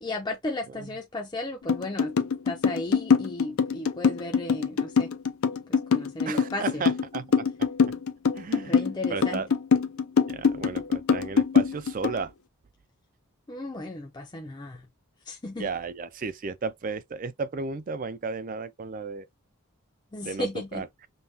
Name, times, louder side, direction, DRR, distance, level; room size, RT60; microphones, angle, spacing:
voice 1, 0.0-2.2 2.4-5.1 5.7-6.8 8.6-9.4 13.5-14.9 15.3-15.7 20.1-20.8, left 1 dB, 20° left, 0.5 m, -35 dB
sound 1, 1.7-12.2, left 6 dB, 70° left, 0.5 m, -23 dB
voice 2, 6.3-7.7 8.3-8.8 9.1-9.5 10.2-12.3 15.6-19.3 20.2-20.9, right 4 dB, 40° right, 0.4 m, -34 dB
5.3 x 2.3 x 2.7 m
head